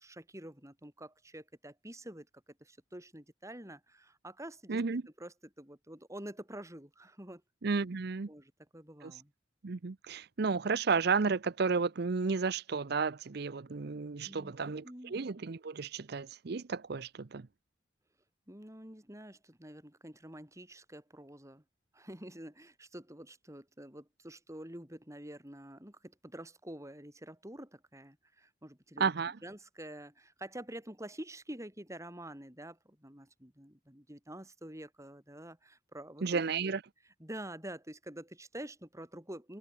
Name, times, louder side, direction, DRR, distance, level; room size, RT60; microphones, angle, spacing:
voice 1, 0.0-2.3 2.6-4.8 5.2-7.4 8.3-9.3 14.2-15.2 18.5-21.6 21.9-29.1 29.4-36.7 37.2-39.6, right 1 dB, 15° right, 7.1 m, -47 dB
voice 2, 4.7-5.0 7.6-8.3 9.0-9.1 9.6-17.5 29.0-29.4 36.2-36.8, right 4 dB, 60° right, 0.6 m, -32 dB
head